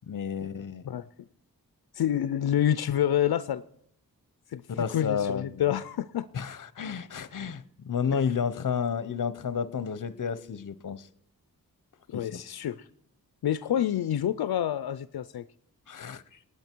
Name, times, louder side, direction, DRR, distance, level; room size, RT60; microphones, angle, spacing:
voice 1, 0.1-0.9 4.7-5.6 6.3-11.1 12.1-12.4 15.9-16.4, left 6 dB, 60° left, 0.8 m, -31 dB
voice 2, 1.9-3.6 4.5-6.3 12.1-12.9 13.4-15.4, left 10 dB, 85° left, 0.5 m, -28 dB
19.5 x 8.6 x 4.5 m
wide cardioid pair, 85°, 36 cm